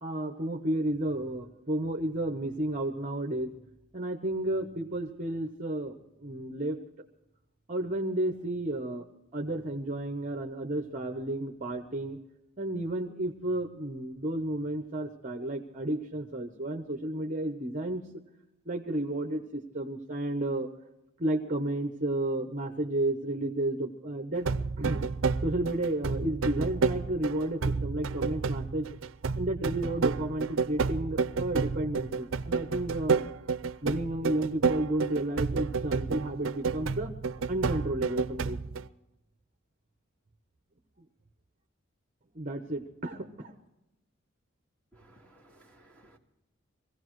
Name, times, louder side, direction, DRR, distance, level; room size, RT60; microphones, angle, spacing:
voice 1, 0.0-3.5 3.9-6.8 7.7-9.1 9.3-12.2 12.6-18.0 18.7-20.7 21.2-24.5 24.8-25.0 25.4-28.9 29.4-33.3 33.8-37.1 37.5-38.6 42.3-43.5, right 1 dB, 35° right, 4 dB, 0.9 m, -32 dB
sound 1, 24.4-38.9, right 4 dB, 70° right, 0.5 m, -30 dB
voice 2, 44.9-46.2, right 1 dB, 10° left, 0 dB, 1.9 m, -58 dB
24.0 x 16.5 x 3.1 m, 0.92 s
head